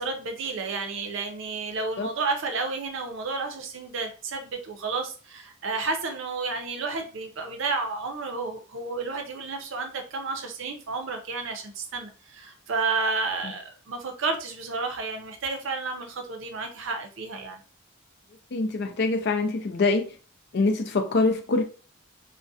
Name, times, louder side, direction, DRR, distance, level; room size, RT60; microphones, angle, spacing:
voice 1, 0.0-17.6, right 4 dB, 60° right, 0.5 m, -31 dB
voice 2, 18.5-20.0 20.5-21.6, left 3 dB, 50° left, 0.4 m, -24 dB
2.3 x 2.1 x 2.6 m
head